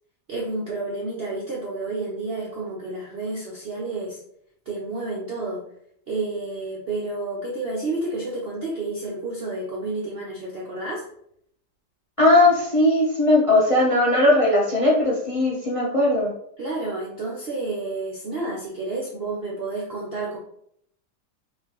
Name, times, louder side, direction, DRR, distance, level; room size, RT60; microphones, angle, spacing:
voice 1, 0.3-4.2 4.7-5.7 6.1-11.0 16.6-20.4, right 2 dB, 60° right, -4 dB, 0.6 m, -30 dB
voice 2, 12.2-16.3, left 1 dB, 30° left, -5 dB, 0.6 m, -18 dB
3.8 x 3.2 x 2.9 m, 0.71 s
omnidirectional pair, 1.8 m